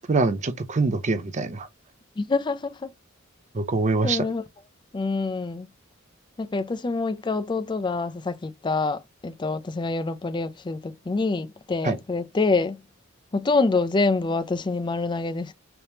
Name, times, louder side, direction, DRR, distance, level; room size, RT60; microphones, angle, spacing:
voice 1, 0.1-1.7 3.5-4.2 11.8-12.0, right 3 dB, 35° right, 0.5 m, -24 dB
voice 2, 2.2-2.9 4.0-4.4 4.9-5.7 6.4-12.8 13.3-15.5, left 3 dB, 20° left, 0.4 m, -26 dB
3.4 x 2.9 x 2.8 m
head